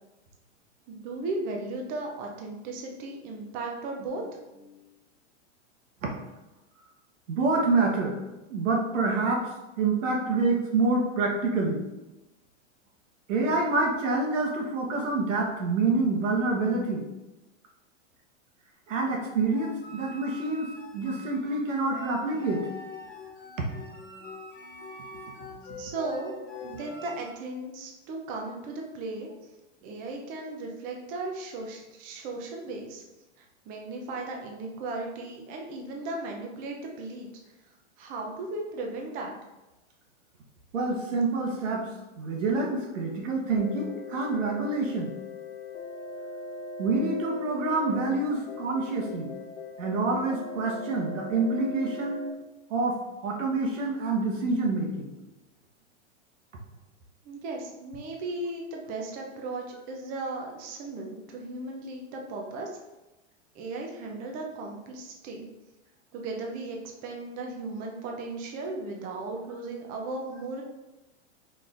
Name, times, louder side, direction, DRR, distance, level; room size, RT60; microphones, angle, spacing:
voice 1, 0.9-4.2 25.8-29.3 29.8-33.0 33.4-37.3 38.0-39.3 57.3-62.7 63.5-65.5 66.1-70.6, right 2 dB, 25° right, 1 dB, 0.5 m, -36 dB
voice 2, 7.3-8.2 8.5-11.8 13.3-17.1 18.9-22.7 23.6-23.7 40.7-45.1 46.8-49.3 49.8-52.2 52.7-55.1, right 3 dB, 85° right, 0 dB, 1.2 m, -27 dB
sound 1, 19.5-27.3, left 3 dB, 25° left, 0.7 m, -44 dB
sound 2, 43.6-52.3, left 2 dB, 85° left, 0.9 m, -40 dB
4.6 x 3.7 x 2.5 m, 1.0 s
supercardioid pair, 145°, 37 cm